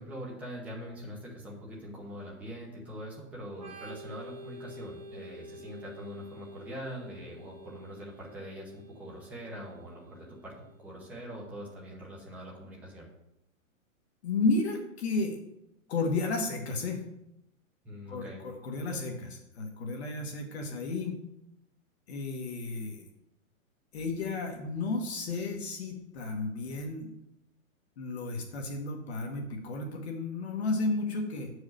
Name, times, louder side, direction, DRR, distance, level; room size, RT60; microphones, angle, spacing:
voice 1, 0.0-10.5 10.8-13.1 17.8-18.4, equal, 5° right, -4 dB, 0.8 m, -43 dB
Organ, 3.5-11.0, equal, 30° right, 2.5 m, -49 dB
voice 2, 14.2-15.4 15.9-17.0 18.1-21.2 22.1-23.1 23.9-27.1 28.0-31.5, left 3 dB, 50° left, 2 dB, 1.3 m, -32 dB
7.1 x 4.8 x 6.5 m, 0.84 s
hypercardioid pair, 170°, 42 cm